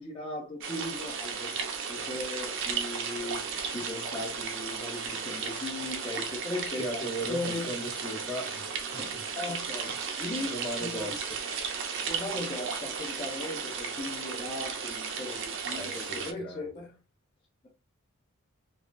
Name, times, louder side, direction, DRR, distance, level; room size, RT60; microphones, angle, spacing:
voice 1, 0.0-1.6 1.9-7.0 7.3-7.7 9.0-9.9 10.2-11.2 12.1-16.9, left 2 dB, 25° left, 0.5 m, -38 dB
sound 1, 0.6-16.3, right 6 dB, 60° right, 0.5 m, -35 dB
voice 2, 6.8-9.2 9.8-10.2 10.4-11.4 15.8-16.7, right 1 dB, 50° left, 1.2 m, -38 dB
3.5 x 2.3 x 2.4 m
head